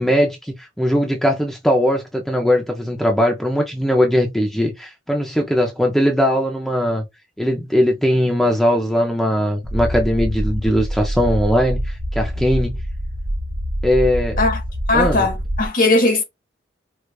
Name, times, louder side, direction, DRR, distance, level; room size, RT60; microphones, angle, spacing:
voice 1, 0.0-7.0 7.4-12.8 13.8-14.4 14.9-15.3, equal, ahead, 0.4 m, -19 dB
sound 1, 9.6-15.7, equal, 65° right, 1.2 m, -25 dB
voice 2, 14.9-16.2, left 2 dB, 50° left, 0.9 m, -18 dB
4.6 x 2.3 x 2.2 m
head